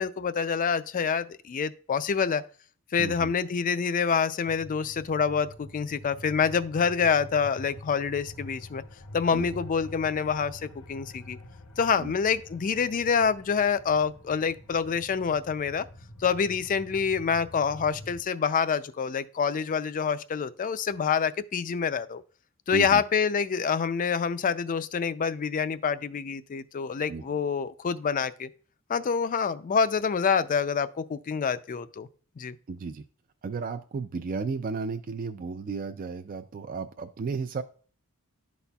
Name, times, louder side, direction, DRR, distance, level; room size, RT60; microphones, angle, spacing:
voice 1, 0.0-2.4 2.9-8.8 9.1-11.4 11.8-15.9 16.2-22.2 22.7-28.5 28.9-32.1 32.4-32.6, left 6 dB, 35° left, 0.4 m, -27 dB
voice 2, 3.0-3.3 9.3-9.5 12.0-12.1 22.7-23.0 27.1-27.2 32.7-33.0 33.4-37.6, right 4 dB, 40° right, 0.3 m, -33 dB
sound 1, 4.5-18.2, left 1 dB, 90° left, 0.9 m, -46 dB
12.0 x 4.1 x 2.3 m
head